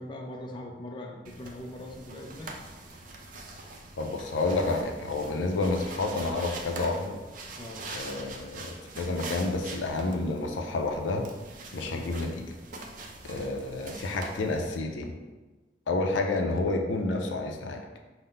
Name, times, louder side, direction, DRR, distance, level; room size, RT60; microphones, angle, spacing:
voice 1, 0.0-2.6 7.6-7.8 11.9-12.1, left 1 dB, 25° left, 1 dB, 0.3 m, -41 dB
sound 1, 1.2-14.8, right 2 dB, 45° right, 0.5 m, -43 dB
voice 2, 4.0-7.2 7.9-11.3 11.7-12.4 13.2-15.1 15.9-17.8, left 2 dB, 85° left, 3 dB, 0.5 m, -29 dB
5.4 x 2.1 x 3.8 m, 1.2 s
head